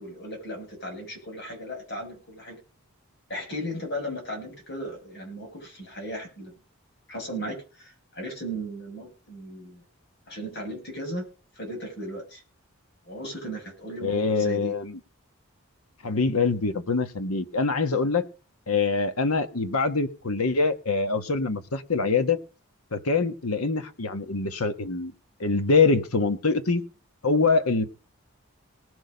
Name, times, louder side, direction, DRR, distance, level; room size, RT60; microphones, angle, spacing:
voice 1, 0.0-2.6 3.3-6.5 7.1-9.8 10.3-11.2 11.5-12.4 13.0-14.7, equal, 50° left, 1 dB, 6.6 m, -36 dB
voice 2, 14.0-14.9 16.0-18.2 18.7-22.4 22.9-25.1 25.4-26.8 27.2-27.8, left 4 dB, 85° left, 9 dB, 1.3 m, -24 dB
19.0 x 6.4 x 5.1 m, 0.36 s
head